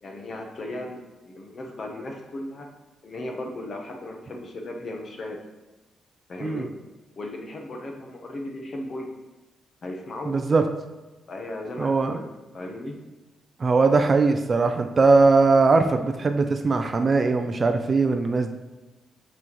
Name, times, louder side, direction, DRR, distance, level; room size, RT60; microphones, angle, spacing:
voice 1, 0.0-2.7 3.0-5.4 6.3-6.7 7.2-9.1 9.8-10.4 11.3-12.3 12.5-13.0, left 1 dB, 40° left, 2 dB, 0.9 m, -36 dB
voice 2, 10.3-10.6 11.8-12.2 13.6-18.6, right 3 dB, 30° right, 6 dB, 0.4 m, -20 dB
6.2 x 6.1 x 3.0 m, 1.1 s
cardioid pair, 150°, 0 cm